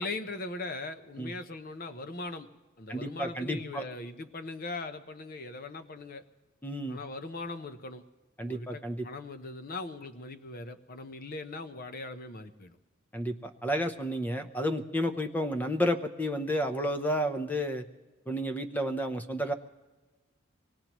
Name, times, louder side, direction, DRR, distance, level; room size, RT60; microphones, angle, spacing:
voice 1, 0.0-2.5 2.8-6.2 6.9-8.0 8.4-12.8, left 2 dB, 45° left, 9 dB, 0.8 m, -40 dB
voice 2, 2.9-3.8 6.6-7.0 8.4-9.1 13.1-17.8 18.3-19.5, equal, 10° left, 7 dB, 0.7 m, -31 dB
24.0 x 19.0 x 3.0 m, 1.2 s
head